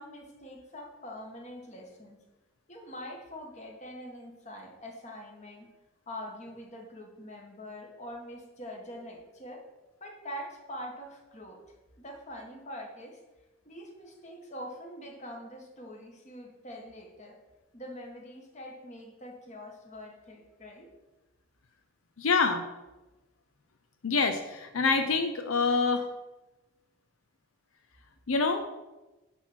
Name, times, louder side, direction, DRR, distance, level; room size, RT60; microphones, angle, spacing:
voice 1, 0.0-2.2 2.7-5.7 6.1-9.6 10.0-11.6 12.0-13.2 13.6-17.4 17.7-20.9 25.7-26.0, equal, 35° left, 1 dB, 1.6 m, -44 dB
voice 2, 22.2-22.7 24.0-26.1 28.3-28.6, left 4 dB, 80° left, 7 dB, 0.7 m, -26 dB
10.0 x 4.4 x 6.2 m, 1.1 s
head